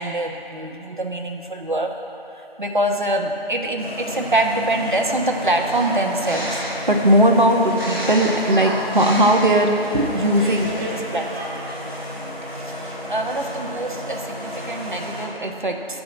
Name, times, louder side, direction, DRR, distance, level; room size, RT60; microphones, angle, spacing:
voice 1, 0.0-2.0 2.3-11.5 12.5-16.0, right 1 dB, 50° right, 3 dB, 1.1 m, -21 dB
sound 1, 3.8-15.3, left 1 dB, 10° left, 2.1 m, -32 dB
sound 2, 5.7-6.9 7.6-10.9 11.2-11.8, equal, 25° right, 2.1 m, -31 dB
12.5 x 5.1 x 8.5 m, 2.9 s
figure-of-eight pair, 170°, 31 cm